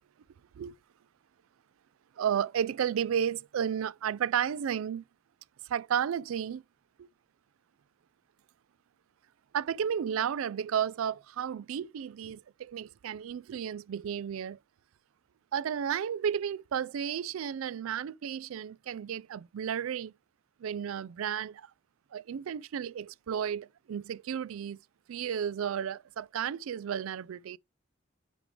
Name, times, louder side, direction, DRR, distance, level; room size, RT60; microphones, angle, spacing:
voice 1, 2.2-5.0 5.7-6.6 7.0-7.1 9.5-14.6 15.5-20.1 20.6-21.7 22.1-24.8 25.1-27.6, right 8 dB, 90° right, 0.3 m, -33 dB
9.9 x 3.6 x 3.3 m
head